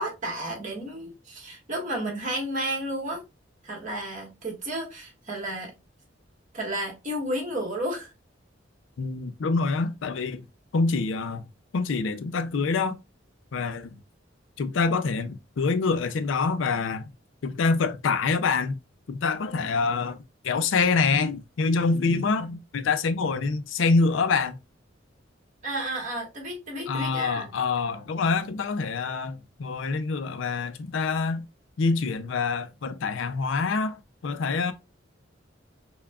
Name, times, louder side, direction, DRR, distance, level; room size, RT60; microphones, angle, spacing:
voice 1, 0.0-3.2 3.6-5.7 6.5-8.1 25.6-27.5, right 1 dB, 40° right, 1.5 m, -32 dB
voice 2, 9.0-10.5 10.7-11.5 11.7-13.0 13.5-14.0 14.6-17.0 17.4-18.8 19.1-20.2 20.4-24.6 26.9-31.5 31.8-34.7, left 4 dB, 80° left, 0.4 m, -26 dB
5.7 x 2.2 x 2.3 m
head